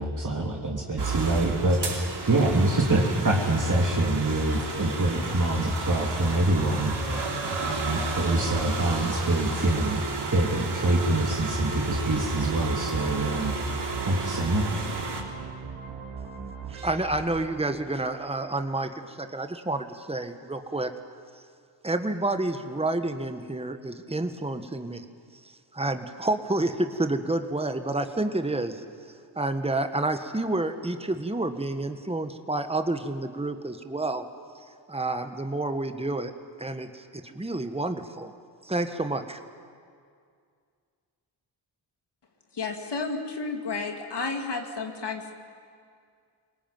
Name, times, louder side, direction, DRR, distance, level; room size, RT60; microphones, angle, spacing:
voice 1, 0.0-2.0 2.3-7.2 7.5-10.0 10.3-13.5 14.1-14.9, right 1 dB, 40° right, -1 dB, 3.2 m, -25 dB
sound 1, 1.0-15.2, right 4 dB, 55° right, 3.6 m, -33 dB
sound 2, 11.9-18.0, right 5 dB, 85° right, 3.2 m, -39 dB
voice 2, 16.7-20.9 21.8-25.0 25.7-28.8 29.3-34.2 34.9-36.3 36.6-38.3 38.6-39.4, right 2 dB, 10° right, 7 dB, 1.6 m, -29 dB
voice 3, 42.5-45.3, left 4 dB, 55° left, 3 dB, 2.3 m, -32 dB
22.5 x 19.0 x 9.3 m, 2.2 s
cardioid pair, 45°, 48 cm